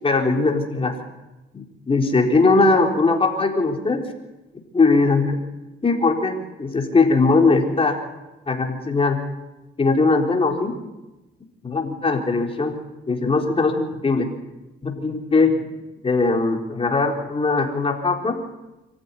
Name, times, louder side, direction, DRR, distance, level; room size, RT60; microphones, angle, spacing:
voice 1, 0.0-0.9 1.5-4.0 4.7-5.4 5.8-8.0 8.5-9.2 9.8-10.8 11.6-12.8 13.1-14.3 14.8-15.6 16.0-18.4, left 3 dB, 30° left, 2 dB, 4.1 m, -20 dB
25.0 x 14.5 x 9.8 m, 1.0 s
cardioid pair, 90°, 20 cm